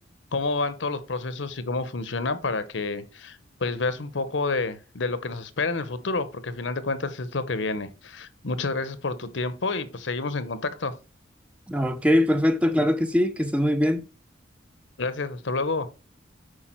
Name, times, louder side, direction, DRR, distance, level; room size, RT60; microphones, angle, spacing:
voice 1, 0.3-11.0 15.0-15.9, left 3 dB, 70° left, 0.9 m, -29 dB
voice 2, 11.7-14.1, left 1 dB, 5° right, 0.6 m, -22 dB
8.8 x 4.8 x 4.4 m
head